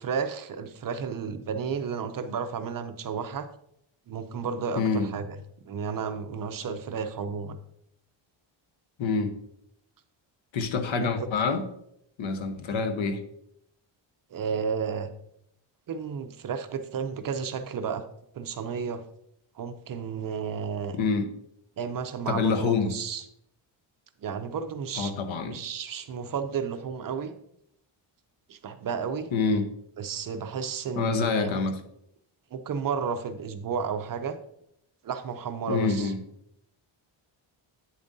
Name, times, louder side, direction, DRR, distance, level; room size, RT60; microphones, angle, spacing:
voice 1, 0.0-3.5 4.1-5.4 5.7-7.6 11.0-11.3 14.3-15.1 15.9-18.0 18.3-19.0 19.6-21.0 21.8-23.2 24.2-25.1 25.4-27.3 28.5-29.3 30.0-31.6 32.5-34.4 35.0-36.1, right 6 dB, 45° right, 9 dB, 0.5 m, -32 dB
voice 2, 4.8-5.1 9.0-9.3 10.5-11.6 12.2-13.2 20.9-21.3 22.3-22.9 25.0-25.6 29.3-29.7 31.0-31.8 35.7-36.2, left 4 dB, 65° left, 8 dB, 1.0 m, -26 dB
8.9 x 7.1 x 2.6 m, 0.74 s
wide cardioid pair, 160°, 49 cm